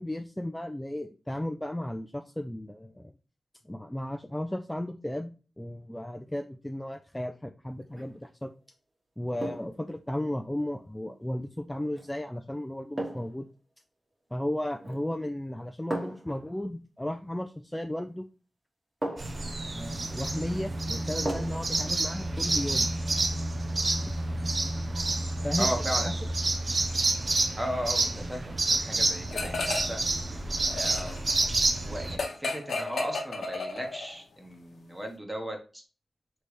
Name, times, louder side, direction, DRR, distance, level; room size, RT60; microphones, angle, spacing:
voice 1, 0.0-3.1 3.6-8.5 9.2-13.5 14.3-18.2 19.6-22.9 24.1-24.2 25.4-25.7 26.1-26.2, left 1 dB, 10° left, 6 dB, 0.3 m, -34 dB
sound 1, 7.8-8.2 9.4-9.8 11.9-12.1 13.0-13.4 14.8-15.2 15.9-16.3 18.0-18.1 19.0-19.5 21.3-21.7 22.1-22.2, right 1 dB, 30° right, 1.5 m, -36 dB
sound 2, 19.2-32.2, right 2 dB, 50° right, 0.6 m, -29 dB
voice 2, 25.6-26.3 27.6-30.0 30.7-31.4 31.9-35.8, equal, 10° right, 3 dB, 1.1 m, -36 dB
sound 3, 29.3-30.1 30.4-34.2, left 3 dB, 80° left, 0.8 m, -33 dB
4.0 x 3.3 x 3.2 m, 0.36 s
wide cardioid pair, 75°, 0 cm